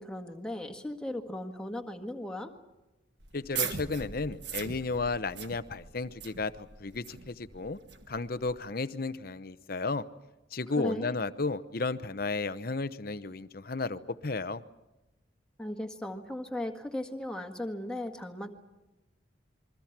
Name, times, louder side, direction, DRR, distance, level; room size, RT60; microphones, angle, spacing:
voice 1, 0.0-2.5 10.8-11.1 15.6-18.5, left 1 dB, 5° left, 4 dB, 1.7 m, -37 dB
sound 1, 3.2-8.6, right 6 dB, 60° right, 1.6 m, -40 dB
voice 2, 3.3-7.8 8.1-10.0 10.5-14.6, left 3 dB, 50° left, 13 dB, 0.8 m, -33 dB
28.0 x 22.5 x 6.0 m, 1.0 s
head